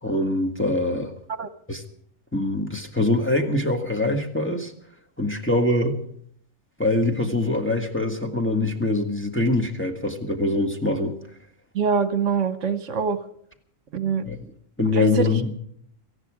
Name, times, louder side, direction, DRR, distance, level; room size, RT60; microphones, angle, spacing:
voice 1, 0.0-1.1 1.7-1.8 2.3-4.7 5.2-6.0 6.8-11.1 14.2-14.4 14.8-15.5, left 2 dB, 10° left, 1 dB, 1.6 m, -23 dB
voice 2, 11.7-13.2 13.9-14.2 14.9-15.3, right 6 dB, 70° right, 12 dB, 1.2 m, -24 dB
18.5 x 14.5 x 4.9 m, 0.66 s
omnidirectional pair, 1.4 m